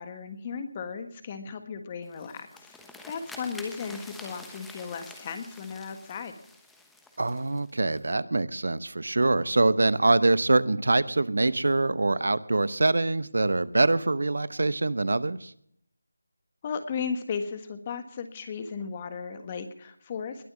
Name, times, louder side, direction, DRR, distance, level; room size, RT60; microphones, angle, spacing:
voice 1, 0.0-2.8 3.0-6.4 16.6-20.4, left 6 dB, 25° left, 8 dB, 1.6 m, -35 dB
sound 1, 2.0-8.1, left 2 dB, ahead, 1.1 m, -48 dB
voice 2, 7.2-15.5, right 2 dB, 65° right, 17 dB, 0.8 m, -24 dB
21.0 x 7.9 x 6.2 m, 0.67 s
figure-of-eight pair, 165°, 0 cm